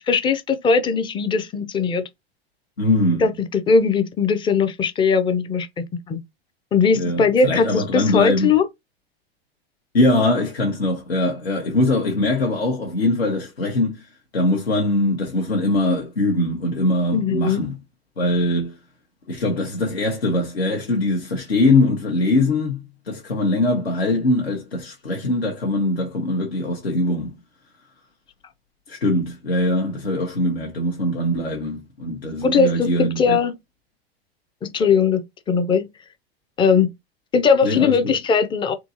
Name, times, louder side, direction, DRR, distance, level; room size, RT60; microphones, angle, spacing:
voice 1, 0.1-2.1 3.2-6.2 6.7-8.7 17.1-17.6 32.4-33.5 34.6-35.9 36.6-36.9 37.3-38.7, left 5 dB, 15° left, 0.4 m, -19 dB
voice 2, 2.8-3.3 7.0-8.5 9.9-14.1 14.3-17.8 18.2-18.8 19.3-27.3 28.9-33.4 37.6-37.9, left 2 dB, 80° left, 1.0 m, -22 dB
3.7 x 2.8 x 2.6 m
figure-of-eight pair, 85°, 31 cm